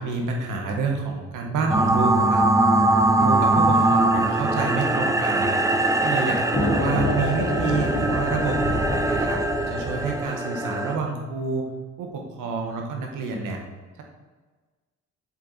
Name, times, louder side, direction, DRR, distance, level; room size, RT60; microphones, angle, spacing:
voice 1, 0.0-2.4 3.2-5.6 6.0-11.6 12.0-13.6, right 4 dB, 90° right, 1 dB, 1.7 m, -28 dB
sound 1, 1.7-11.0, right 2 dB, 10° right, 0.7 m, -22 dB
sound 2, 6.5-10.2, left 1 dB, 55° left, 2.9 m, -27 dB
7.8 x 7.6 x 4.3 m, 1.4 s
cardioid pair, 90°, 30 cm